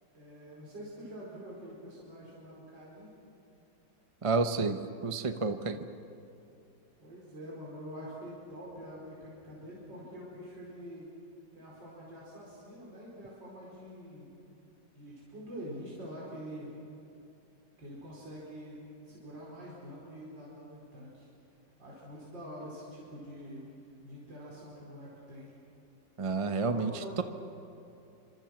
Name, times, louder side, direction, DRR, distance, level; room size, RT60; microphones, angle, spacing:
voice 1, 0.1-3.1 7.0-11.1 11.5-14.3 14.9-16.7 17.8-21.3 21.8-23.6 24.0-25.5 26.7-27.2, equal, 75° right, -6 dB, 5.6 m, -46 dB
voice 2, 4.2-5.9 26.2-26.9 27.2-27.3, right 4 dB, 30° right, 8 dB, 0.6 m, -30 dB
28.5 x 25.5 x 6.1 m, 2.8 s
omnidirectional pair, 2.0 m